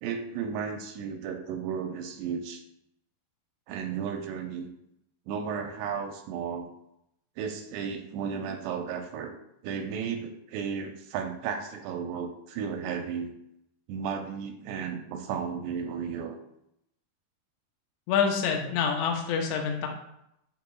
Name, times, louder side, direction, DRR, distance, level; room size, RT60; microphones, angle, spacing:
voice 1, 0.0-2.6 3.7-4.7 5.3-6.7 7.4-9.3 9.6-13.3 13.9-16.4, right 6 dB, 85° right, 5 dB, 2.5 m, -34 dB
voice 2, 18.1-19.9, left 6 dB, 85° left, 1 dB, 2.9 m, -26 dB
8.4 x 6.0 x 2.3 m, 0.79 s
omnidirectional pair, 5.1 m